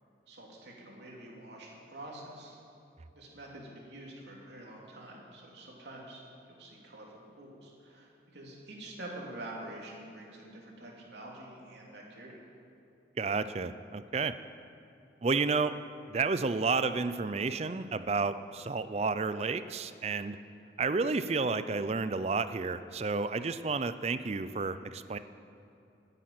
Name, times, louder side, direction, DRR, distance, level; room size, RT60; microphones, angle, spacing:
voice 1, 0.3-2.6 3.1-12.4, right 1 dB, 70° right, -2 dB, 2.8 m, -47 dB
voice 2, 13.2-14.4 15.2-15.7 16.1-20.4 20.8-25.2, right 4 dB, 35° right, 13 dB, 0.4 m, -31 dB
10.5 x 9.0 x 9.4 m, 2.8 s
head